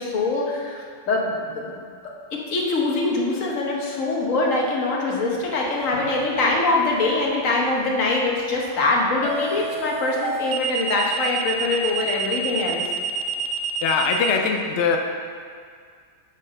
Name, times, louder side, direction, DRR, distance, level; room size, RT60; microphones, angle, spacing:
voice 1, 0.0-1.8 2.3-12.8, left 2 dB, 85° left, -1 dB, 1.5 m, -23 dB
sound 1, 5.9-6.3 9.2-14.3, right 7 dB, 60° right, 0.7 m, -28 dB
voice 2, 13.8-15.0, left 5 dB, 65° left, 3 dB, 0.8 m, -21 dB
7.3 x 4.0 x 6.3 m, 2.1 s
omnidirectional pair, 1.3 m